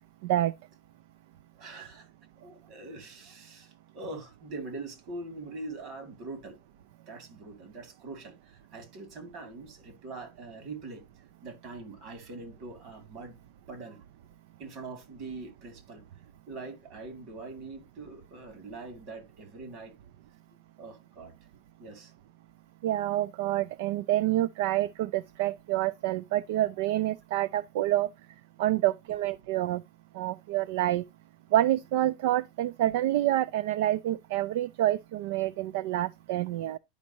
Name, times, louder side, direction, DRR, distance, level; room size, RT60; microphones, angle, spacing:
voice 1, 0.2-0.5 1.6-1.9 22.8-28.1 28.6-29.8 30.1-31.0 31.5-36.8, right 14 dB, 70° right, 0.3 m, -28 dB
voice 2, 1.5-2.1 2.4-6.6 7.1-11.0 11.4-13.3 13.7-14.0 14.6-16.0 16.5-19.9 20.5-21.3 21.8-22.1, right 3 dB, 50° right, 2.6 m, -43 dB
10.5 x 5.3 x 2.8 m
supercardioid pair, 140°, 0 cm